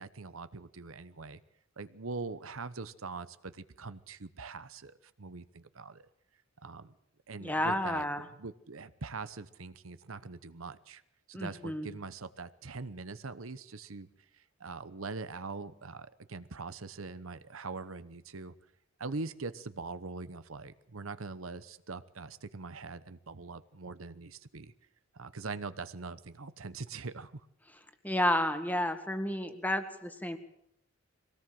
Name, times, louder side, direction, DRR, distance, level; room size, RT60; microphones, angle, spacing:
voice 1, 0.0-1.4 1.8-6.1 6.6-6.9 7.3-8.1 8.4-11.0 11.3-14.1 14.6-18.5 19.0-24.7 25.1-27.4, right 4 dB, 85° right, 13 dB, 1.0 m, -42 dB
voice 2, 7.4-8.3 11.3-11.9 28.0-30.4, left 1 dB, 10° left, 8 dB, 1.9 m, -31 dB
23.0 x 18.0 x 7.7 m, 0.77 s
head